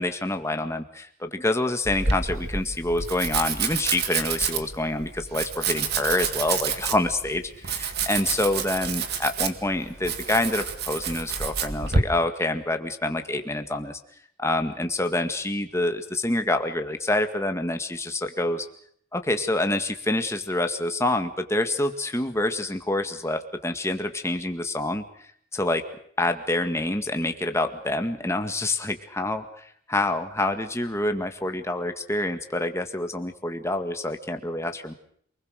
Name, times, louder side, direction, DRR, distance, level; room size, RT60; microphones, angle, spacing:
voice 1, 0.0-14.0 14.4-18.7 19.1-25.9 26.2-34.9, left 2 dB, 15° left, 7 dB, 1.9 m, -27 dB
Domestic sounds home sounds, 1.8-12.0, right 5 dB, 50° right, 2.0 m, -28 dB
27.5 x 21.0 x 6.5 m, 0.64 s
head